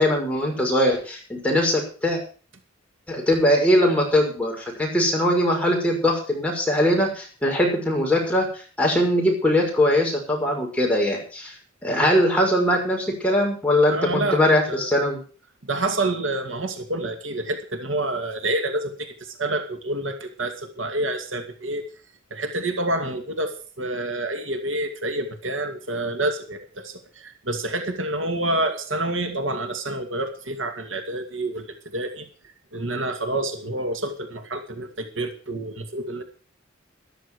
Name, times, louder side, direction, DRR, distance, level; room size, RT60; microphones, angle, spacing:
voice 1, 0.0-2.2 3.1-8.5 8.8-11.5 11.8-15.2, left 1 dB, 5° left, -1 dB, 6.0 m, -21 dB
voice 2, 13.9-14.4 14.7-14.9 15.6-21.9 22.3-31.7 31.9-32.3 32.7-36.2, right 2 dB, 70° right, 6 dB, 2.4 m, -28 dB
14.0 x 13.0 x 4.9 m, 0.39 s
head